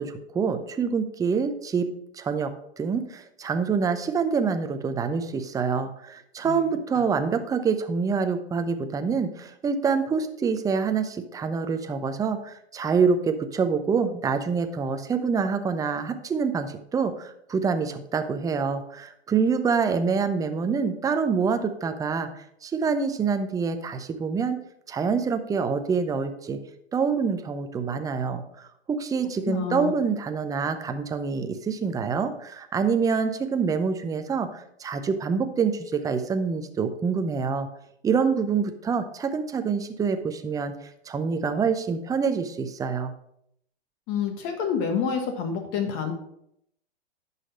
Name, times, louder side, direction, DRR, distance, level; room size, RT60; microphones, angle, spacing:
voice 1, 0.0-1.8 2.1-2.5 2.8-24.6 24.9-26.6 26.9-37.7 38.0-40.7 41.1-43.1, right 5 dB, 10° right, 8 dB, 0.6 m, -26 dB
voice 2, 29.5-29.9 44.1-46.1, left 7 dB, 40° left, 5 dB, 1.5 m, -28 dB
11.0 x 4.1 x 5.2 m, 0.74 s
hypercardioid pair, 115°, 32 cm